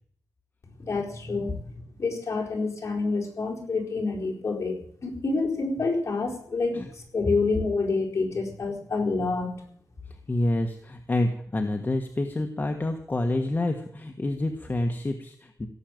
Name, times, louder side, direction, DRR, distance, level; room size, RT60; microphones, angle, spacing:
voice 1, 0.8-1.7 2.0-9.6, left 3 dB, 45° left, -2 dB, 4.4 m, -28 dB
voice 2, 10.1-15.7, left 1 dB, 25° left, 4 dB, 1.4 m, -28 dB
17.0 x 7.6 x 9.1 m, 0.66 s
wide cardioid pair, 130°, 6 cm